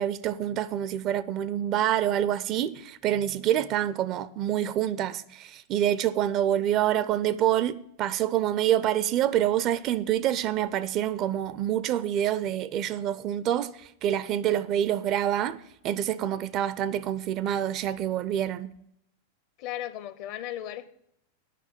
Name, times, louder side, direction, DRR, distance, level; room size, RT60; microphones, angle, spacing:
voice 1, 0.0-18.7, right 11 dB, 35° right, 0.5 m, -27 dB
voice 2, 19.6-20.9, left 12 dB, 45° left, 0.7 m, -36 dB
9.2 x 5.9 x 8.4 m
figure-of-eight pair, 90°, 0 cm